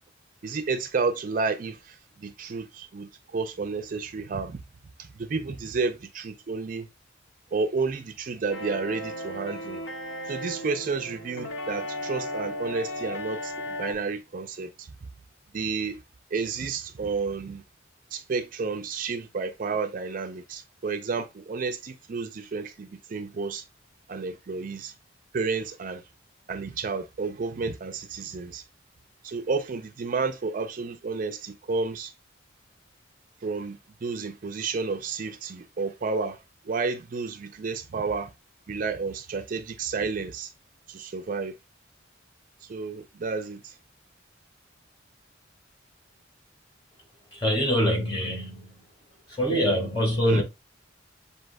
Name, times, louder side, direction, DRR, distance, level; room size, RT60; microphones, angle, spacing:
voice 1, 0.4-4.6 5.0-6.9 7.5-9.8 10.3-14.9 15.5-16.0 16.3-17.6 18.1-23.6 24.1-24.9 25.3-26.0 26.5-28.6 29.2-32.1 33.4-36.4 36.7-38.3 38.7-40.5 40.9-41.5 42.6-43.7 50.3-50.4, right 4 dB, 45° right, 0.4 m, -31 dB
sound 1, 8.5-13.9, left 1 dB, 85° left, 1.0 m, -35 dB
voice 2, 47.3-48.7 49.3-50.4, equal, 25° left, 1.5 m, -24 dB
7.4 x 2.8 x 2.2 m
head